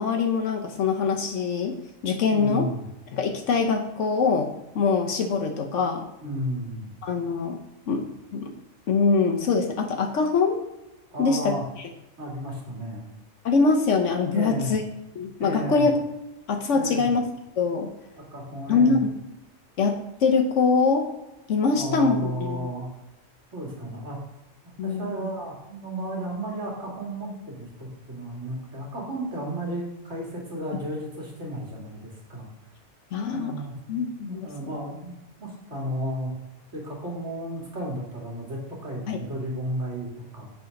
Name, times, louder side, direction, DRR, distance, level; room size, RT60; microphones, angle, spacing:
voice 1, 0.0-1.8 2.0-2.7 3.1-6.1 7.0-7.6 7.9-8.1 8.3-8.5 8.9-10.6 11.2-11.5 13.4-14.8 15.2-15.9 16.5-17.2 17.6-17.9 18.7-19.1 19.8-21.1 21.5-22.7 24.8-25.1 33.1-33.5 33.9-34.5 39.1-39.2, left 4 dB, 80° left, 4 dB, 1.2 m, -23 dB
voice 2, 2.3-2.9 6.2-6.9 11.1-11.6 12.2-13.0 14.3-14.7 15.4-15.9 16.7-17.1 18.2-19.1 21.7-22.9 23.5-24.2 24.8-32.5 33.3-33.7 34.2-35.1 35.4-36.3 36.7-40.5, right 1 dB, 70° right, -2 dB, 2.6 m, -33 dB
8.0 x 5.0 x 5.2 m, 0.94 s
omnidirectional pair, 1.2 m